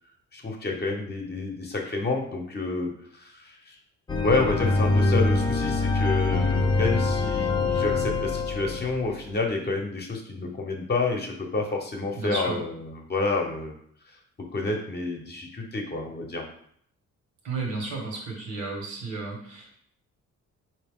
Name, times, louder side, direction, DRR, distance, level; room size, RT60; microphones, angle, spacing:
voice 1, 0.3-3.8 4.2-13.7 14.1-14.2 14.5-16.5, left 3 dB, 35° left, 1 dB, 0.9 m, -29 dB
sound 1, 4.1-9.2, left 3 dB, 15° left, 0.5 m, -24 dB
voice 2, 12.1-12.6 17.4-19.8, right 3 dB, 80° right, 0 dB, 1.5 m, -33 dB
4.2 x 2.8 x 3.6 m, 0.64 s
cardioid pair, 90°, 30 cm